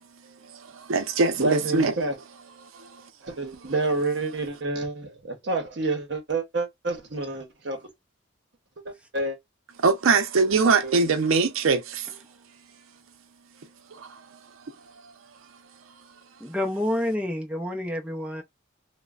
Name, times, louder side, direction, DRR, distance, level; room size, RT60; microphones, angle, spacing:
voice 1, 0.2-1.9 2.6-3.1 9.8-12.2 13.9-14.4 15.0-15.1, right 4 dB, 90° right, 0.5 m, -23 dB
voice 2, 1.4-2.2 3.3-7.9 8.8-9.4 10.8-10.9, right 3 dB, 55° right, 0.8 m, -28 dB
voice 3, 16.4-18.4, left 1 dB, 5° right, 0.4 m, -28 dB
3.0 x 2.1 x 2.3 m
head